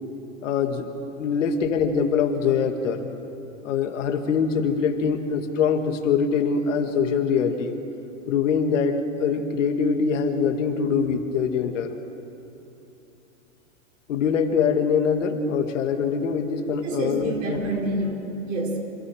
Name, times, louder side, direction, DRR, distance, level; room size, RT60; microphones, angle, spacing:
voice 1, 0.4-0.9 1.2-3.0 3.6-7.7 8.3-12.0 14.1-17.6, left 6 dB, 65° left, 5 dB, 2.0 m, -23 dB
voice 2, 16.8-18.8, right 2 dB, 70° right, 0 dB, 5.4 m, -28 dB
27.0 x 15.0 x 6.3 m, 2.9 s
supercardioid pair, 165°, 40 cm